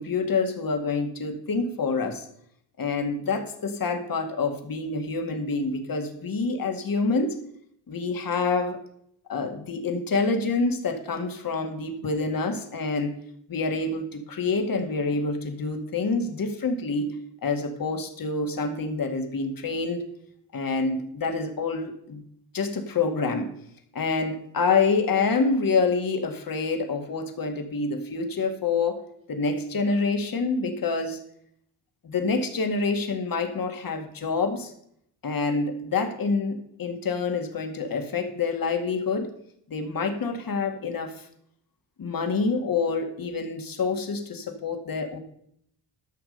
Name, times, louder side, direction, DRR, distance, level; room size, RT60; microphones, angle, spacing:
voice 1, 0.0-2.3 2.8-7.4 7.9-8.8 9.3-13.1 13.5-20.0 20.5-22.2 22.5-23.5 23.9-29.0 29.3-31.2 32.0-34.7 35.2-39.3 39.7-41.3 42.0-45.2, left 4 dB, 50° left, 6 dB, 2.1 m, -27 dB
13.0 x 6.2 x 5.4 m, 0.69 s
supercardioid pair, 65°, 45 cm